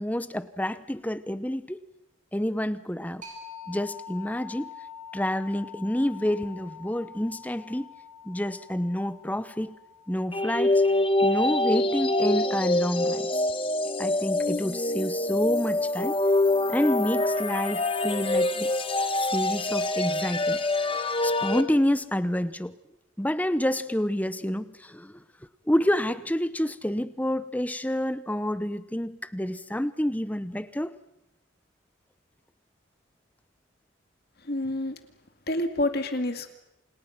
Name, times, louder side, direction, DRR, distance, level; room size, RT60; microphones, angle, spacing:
voice 1, 0.0-1.8 2.3-3.2 3.7-4.7 5.1-7.9 8.2-9.8 10.1-10.8 11.2-13.5 14.0-16.2 16.7-18.7 19.1-20.9 21.2-22.7 23.2-25.2 25.7-30.9, left 1 dB, 10° left, 14 dB, 0.9 m, -28 dB
sound 1, 3.2-12.6, left 6 dB, 40° right, 6.7 m, -46 dB
sound 2, 10.3-21.6, left 2 dB, 25° left, 1.3 m, -25 dB
voice 2, 34.4-35.0 35.5-36.5, left 1 dB, 50° left, 7 dB, 2.3 m, -28 dB
28.5 x 28.0 x 6.0 m, 0.85 s
head